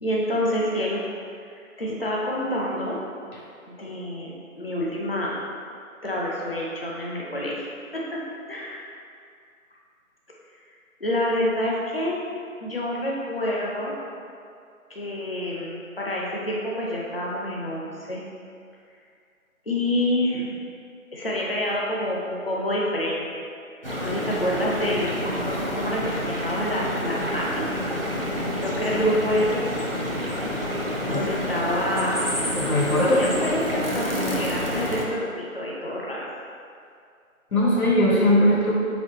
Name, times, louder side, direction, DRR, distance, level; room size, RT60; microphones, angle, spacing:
voice 1, 0.0-1.0 1.5-3.0 3.7-5.4 6.0-7.6 7.9-8.2 8.5-8.8 11.0-12.2 12.6-13.9 14.9-18.2 19.7-20.5 21.1-23.4 24.0-27.7 28.6-29.6 31.0-32.2 33.0-36.3, left 1 dB, 45° left, -4 dB, 0.5 m, -27 dB
sound 1, 23.8-35.0, equal, 45° right, 0.5 m, -28 dB
voice 2, 32.5-33.2 37.5-38.7, left 1 dB, 85° left, -5 dB, 1.5 m, -20 dB
4.2 x 3.1 x 3.9 m, 2.3 s
figure-of-eight pair, 180°, 42 cm